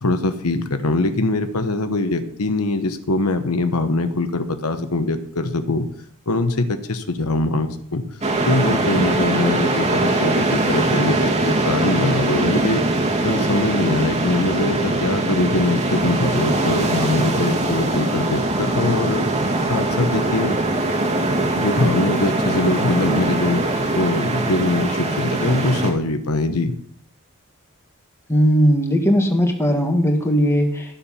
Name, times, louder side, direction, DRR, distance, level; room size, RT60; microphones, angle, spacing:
voice 1, 0.0-5.9 6.3-8.0 8.5-12.8 13.2-19.2 19.7-20.6 21.5-23.6 23.9-26.7, left 2 dB, 80° left, 8 dB, 1.1 m, -22 dB
sound 1, 8.2-25.9, right 2 dB, 30° right, 2.0 m, -21 dB
voice 2, 28.3-31.0, equal, 10° left, 3 dB, 1.6 m, -18 dB
13.0 x 7.1 x 5.7 m, 0.66 s
head